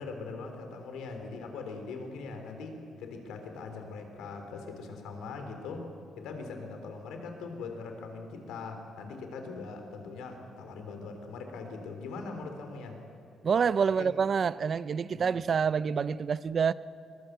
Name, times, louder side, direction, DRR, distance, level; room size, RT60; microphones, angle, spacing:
voice 1, 0.0-5.8 6.2-13.0 14.0-14.1 15.1-15.3, left 4 dB, 90° left, 5 dB, 3.4 m, -41 dB
voice 2, 13.4-16.7, right 6 dB, 50° right, 16 dB, 0.6 m, -27 dB
23.5 x 20.5 x 8.1 m, 2.6 s
cardioid pair, 90°, 0 cm